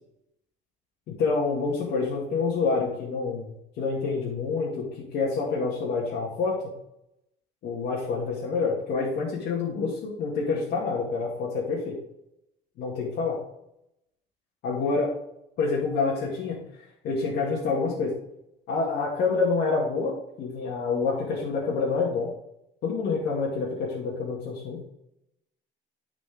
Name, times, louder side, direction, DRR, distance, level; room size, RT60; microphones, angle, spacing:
voice 1, 1.1-4.9 5.1-6.5 7.6-12.0 12.8-13.4 14.6-15.1 15.6-16.6 17.0-18.1 18.7-22.3 22.8-24.8, left 4 dB, 75° left, -4 dB, 2.2 m, -27 dB
10.5 x 5.0 x 3.6 m, 0.82 s
cardioid pair, 110°, 17 cm